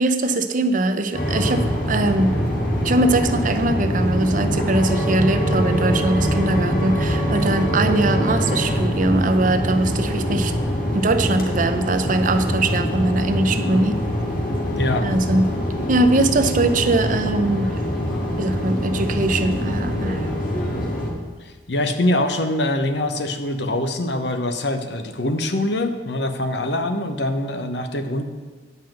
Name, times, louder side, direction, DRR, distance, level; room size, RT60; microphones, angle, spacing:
voice 1, 0.0-2.3 2.8-10.5 10.9-14.0 15.0-15.5 15.9-17.7 18.4-20.3, right 2 dB, 50° right, 9 dB, 0.7 m, -21 dB
sound 1, 1.1-21.1, equal, 55° left, 2.0 m, -23 dB
voice 2, 14.7-15.1 21.4-28.2, left 1 dB, 70° left, 7 dB, 0.9 m, -24 dB
9.0 x 5.6 x 7.6 m, 1.5 s
head